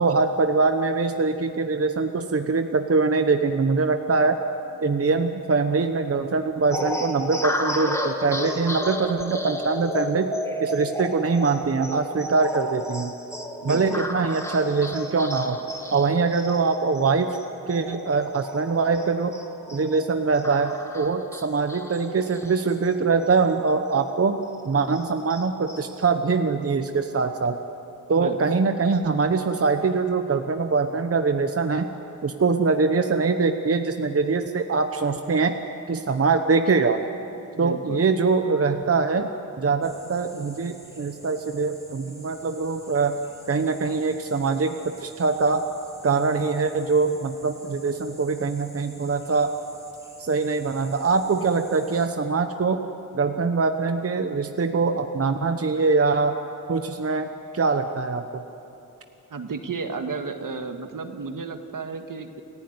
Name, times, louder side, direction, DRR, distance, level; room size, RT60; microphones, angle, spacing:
voice 1, 0.0-4.4 4.8-10.3 10.6-13.1 13.6-15.6 15.9-17.4 17.7-19.3 19.7-24.4 24.6-27.6 28.1-31.9 32.2-35.5 35.9-37.0 37.6-39.3 39.6-43.2 43.5-45.6 46.0-49.5 50.2-52.8 53.1-56.4 56.7-58.4, right 4 dB, 45° right, 7 dB, 1.0 m, -23 dB
sound 1, 6.7-23.6 24.0-24.1 24.4-26.1, left 1 dB, 10° left, 1.8 m, -33 dB
voice 2, 13.6-14.1 28.2-28.4 37.6-38.0 59.3-62.4, right 4 dB, 70° right, 6 dB, 1.8 m, -33 dB
sound 2, 39.8-52.1, right 1 dB, 10° right, 3.3 m, -49 dB
29.0 x 15.0 x 9.5 m, 2.8 s
wide cardioid pair, 115°, 33 cm